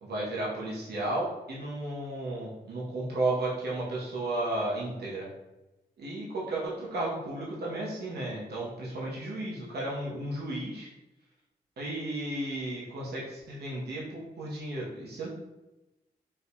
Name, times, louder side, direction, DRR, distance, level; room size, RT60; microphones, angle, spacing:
voice 1, 0.0-5.3 6.0-10.9 11.8-15.3, right 2 dB, 80° right, -5 dB, 0.9 m, -33 dB
4.5 x 2.6 x 2.2 m, 0.98 s
cardioid pair, 40°, 17 cm